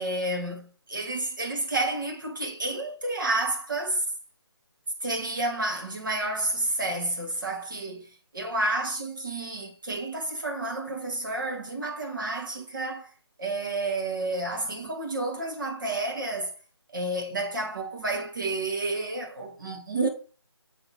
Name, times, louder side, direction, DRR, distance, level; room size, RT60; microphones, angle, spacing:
voice 1, 0.0-4.1 5.0-13.1 13.4-16.5 16.9-20.1, right 2 dB, 45° right, 2.2 m, -30 dB
7.6 x 3.9 x 6.0 m
figure-of-eight pair, 175°, 14 cm